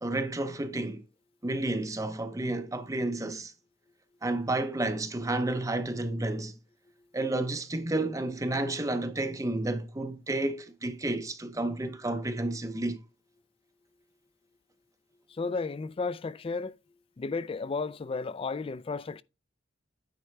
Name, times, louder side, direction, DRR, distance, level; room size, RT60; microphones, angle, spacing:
voice 1, 0.0-1.0 1.4-3.5 4.2-6.6 7.1-13.0, right 2 dB, 15° right, 0.6 m, -31 dB
voice 2, 15.3-16.7 17.2-19.2, left 4 dB, 30° left, 0.3 m, -33 dB
9.5 x 3.5 x 4.5 m
head